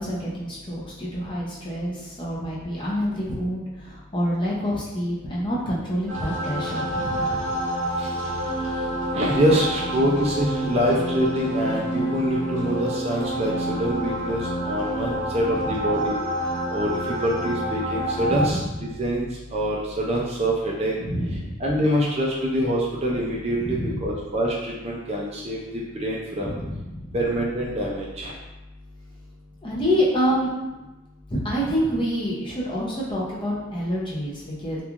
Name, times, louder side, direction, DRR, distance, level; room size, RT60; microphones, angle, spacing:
voice 1, 0.0-7.5 15.6-15.7 18.2-18.7 21.0-21.6 23.6-24.1 26.4-27.2 29.6-30.5 31.3-34.8, equal, 25° left, -6 dB, 0.5 m, -27 dB
sound 1, 6.1-18.5, right 1 dB, 70° right, 0.8 m, -28 dB
voice 2, 9.1-16.1 16.7-16.9 17.2-20.9 21.6-26.5 27.1-28.3, equal, 30° right, -3 dB, 0.3 m, -25 dB
3.0 x 2.3 x 2.4 m, 1.0 s
head